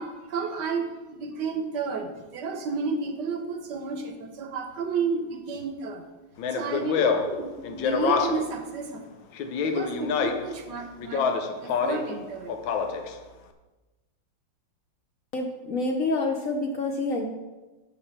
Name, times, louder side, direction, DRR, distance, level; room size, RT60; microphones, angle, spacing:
voice 1, 0.0-6.0 6.5-9.0 9.5-11.3 11.6-12.6, right 4 dB, 70° right, 6 dB, 1.4 m, -32 dB
Speech, 6.4-8.6 9.4-10.5 11.0-12.1 12.5-13.1, left 5 dB, 85° left, 1.5 m, -26 dB
voice 2, 15.3-17.2, left 2 dB, 55° left, 2 dB, 1.0 m, -27 dB
7.0 x 6.6 x 5.8 m, 1.2 s
omnidirectional pair, 2.1 m